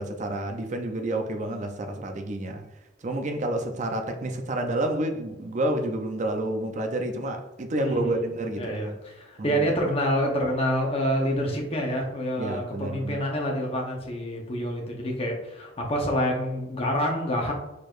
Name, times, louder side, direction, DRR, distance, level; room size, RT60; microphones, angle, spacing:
voice 1, 0.0-2.6 3.0-8.9 9.4-9.7 12.4-13.2, right 1 dB, 45° right, 5 dB, 0.5 m, -29 dB
voice 2, 7.8-8.1 8.6-17.5, equal, 35° left, 0 dB, 0.9 m, -27 dB
4.6 x 4.6 x 2.5 m, 1.0 s
head